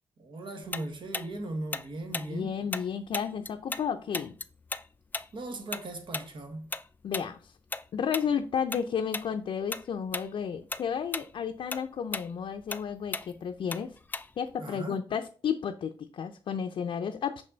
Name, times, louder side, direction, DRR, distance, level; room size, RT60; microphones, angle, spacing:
voice 1, 0.2-2.5 5.3-6.7 14.6-15.0, right 2 dB, 70° right, 1.5 m, -38 dB
Tick-tock, 0.7-3.9 4.1-8.8 9.1-9.3 9.7-10.3 10.6-14.5, left 3 dB, 20° left, 0.4 m, -36 dB
voice 2, 2.1-4.4 7.0-7.5 7.9-13.9 14.4-17.4, left 7 dB, 70° left, 0.5 m, -32 dB
6.2 x 5.4 x 3.9 m
wide cardioid pair, 100°, 9 cm